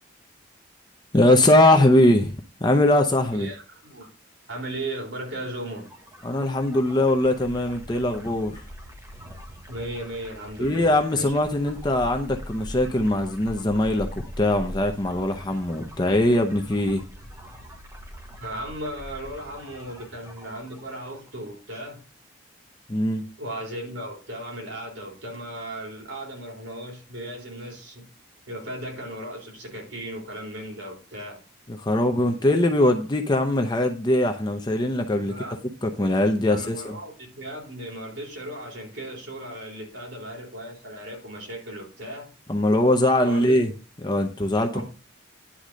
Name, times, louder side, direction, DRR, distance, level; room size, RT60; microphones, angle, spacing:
voice 1, 1.1-2.3 2.6-3.5 6.2-8.6 10.6-17.0 22.9-23.2 31.8-35.5 35.8-37.0 42.5-43.7 44.0-44.8, left 1 dB, 20° left, 4 dB, 0.7 m, -21 dB
voice 2, 3.3-4.1 4.5-5.9 9.7-11.4 18.4-22.0 23.4-28.0 28.5-31.4 35.2-35.5 36.4-42.3 43.2-43.6 44.7-44.8, right 1 dB, 75° right, -1 dB, 3.9 m, -36 dB
sound 1, 5.6-21.3, equal, 15° right, 1.2 m, -42 dB
10.0 x 3.9 x 6.2 m, 0.34 s
head